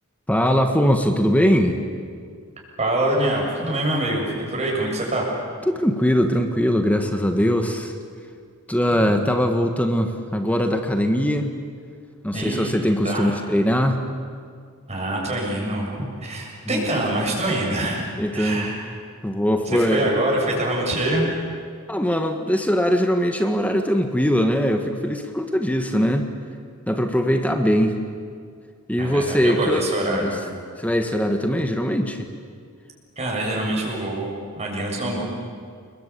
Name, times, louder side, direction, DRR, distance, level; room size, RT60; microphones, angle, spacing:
voice 1, 0.3-1.8 5.7-7.9 8.7-11.5 12.2-14.0 16.7-16.8 18.2-18.7 19.2-20.1 21.9-26.3 26.9-28.0 28.9-30.3 30.8-32.3, equal, 5° left, 5 dB, 1.5 m, -21 dB
voice 2, 2.8-5.3 12.3-12.7 13.0-13.3 14.9-18.0 18.3-18.8 19.7-21.3 29.0-30.4 33.2-35.2, right 1 dB, 30° right, -2 dB, 7.2 m, -25 dB
30.0 x 21.5 x 8.5 m, 2.1 s
head